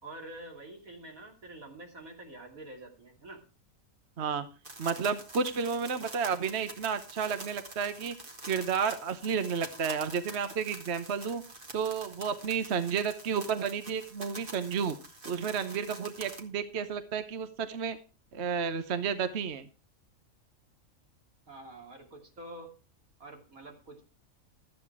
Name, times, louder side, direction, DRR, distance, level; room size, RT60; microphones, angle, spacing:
voice 1, 0.0-3.4 21.5-22.7 23.2-24.0, right 2 dB, 80° right, 2 dB, 3.5 m, -47 dB
sound 1, 4.6-16.4, right 2 dB, 40° right, 2.2 m, -46 dB
voice 2, 4.8-8.1 8.4-11.4 11.7-15.0 15.2-18.0 18.3-19.7, right 6 dB, 55° right, 11 dB, 1.1 m, -31 dB
13.5 x 9.4 x 4.7 m, 0.34 s
omnidirectional pair, 1.4 m